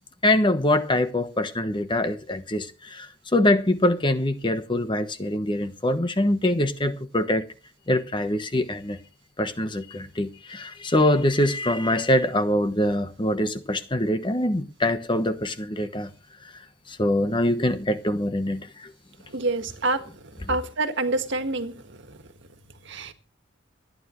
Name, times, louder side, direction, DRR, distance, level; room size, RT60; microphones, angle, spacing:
voice 1, 0.2-7.5 7.9-9.0 9.4-16.1 16.9-18.9 20.4-20.6, left 1 dB, 25° left, 1.1 m, -24 dB
voice 2, 19.3-20.0 20.5-21.7 22.9-23.1, right 2 dB, 60° right, 1.8 m, -26 dB
26.0 x 9.8 x 3.2 m
head